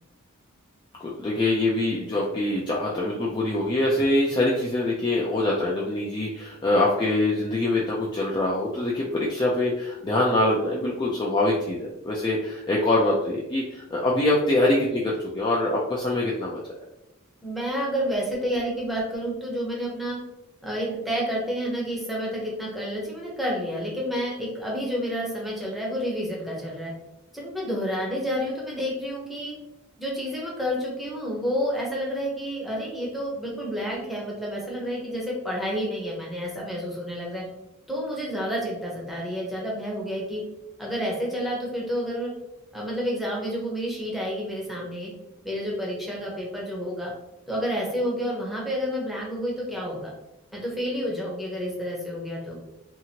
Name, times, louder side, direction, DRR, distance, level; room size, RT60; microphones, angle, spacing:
voice 1, 1.0-16.7, left 1 dB, 20° left, -5 dB, 0.3 m, -24 dB
voice 2, 17.4-20.2 20.6-26.9 27.3-29.5 30.0-37.4 37.9-40.4 40.8-42.3 42.7-45.1 45.4-47.1 47.5-50.1 50.5-52.6, equal, ahead, -4 dB, 0.7 m, -29 dB
2.8 x 2.5 x 2.8 m, 0.92 s
head